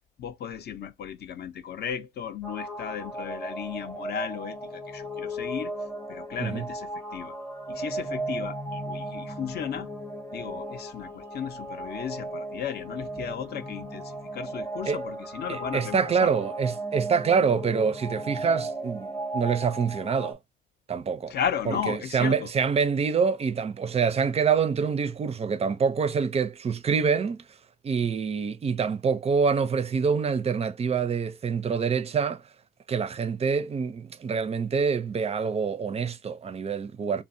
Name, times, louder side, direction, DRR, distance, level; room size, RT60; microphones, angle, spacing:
voice 1, 0.2-5.7 6.1-7.4 7.7-9.9 10.3-16.3 21.3-22.5, left 8 dB, 55° left, 0.5 m, -35 dB
sound 1, 2.4-20.3, right 1 dB, 10° left, 0.6 m, -36 dB
voice 2, 15.5-20.4 20.9-21.3 21.7-27.5 27.8-32.4 32.9-37.2, right 6 dB, 30° right, 0.4 m, -26 dB
3.1 x 2.1 x 2.5 m
cardioid pair, 90°, 20 cm